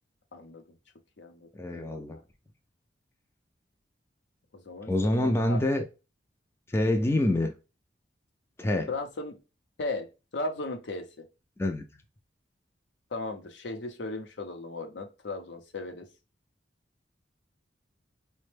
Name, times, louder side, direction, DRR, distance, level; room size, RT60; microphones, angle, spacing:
voice 1, 0.3-0.6 1.2-2.0 4.5-5.6 8.9-9.4 9.8-11.3 13.1-16.1, left 2 dB, 75° left, 0.7 m, -37 dB
voice 2, 1.5-2.2 4.9-5.8 6.7-7.5 8.6-8.9 11.6-11.8, left 1 dB, 15° left, 0.4 m, -26 dB
4.2 x 2.2 x 3.2 m
head